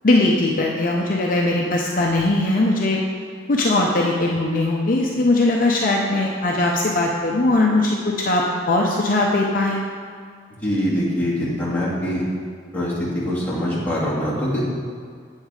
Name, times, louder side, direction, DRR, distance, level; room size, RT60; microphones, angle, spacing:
voice 1, 0.0-3.0 3.5-9.8, left 2 dB, 45° left, -1 dB, 0.7 m, -20 dB
voice 2, 10.6-12.2 12.7-14.6, equal, 10° left, -9 dB, 2.3 m, -23 dB
8.5 x 7.2 x 4.9 m, 2.1 s
head